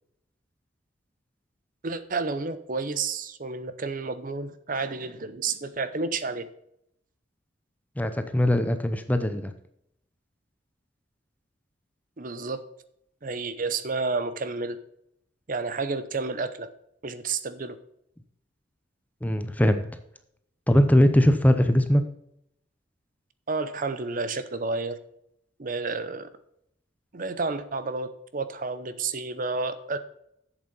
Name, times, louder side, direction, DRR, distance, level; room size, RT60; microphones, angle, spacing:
voice 1, 1.8-6.5 12.2-12.6 13.2-14.8 15.5-16.7 17.0-17.8 23.5-25.0 25.6-26.3 27.1-30.0, right 4 dB, 45° right, 12 dB, 0.7 m, -30 dB
voice 2, 8.0-9.5 19.2-19.8 20.7-22.0, equal, 10° left, 9 dB, 0.6 m, -21 dB
8.0 x 7.4 x 5.5 m, 0.75 s
head